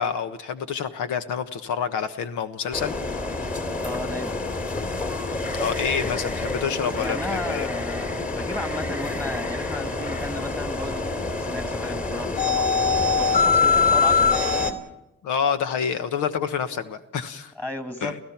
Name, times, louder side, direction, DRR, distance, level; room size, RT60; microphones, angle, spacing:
voice 1, 0.0-2.9 5.6-7.7 15.2-17.5 18.0-18.2, left 7 dB, 80° left, 9 dB, 1.3 m, -27 dB
sound 1, 2.7-14.7, left 4 dB, 30° left, 2.7 m, -25 dB
voice 2, 3.8-4.5 7.0-12.7 13.2-14.8 17.6-18.1, left 1 dB, 5° left, 8 dB, 1.8 m, -34 dB
30.0 x 15.5 x 5.9 m, 0.90 s
cardioid pair, 90°, 30 cm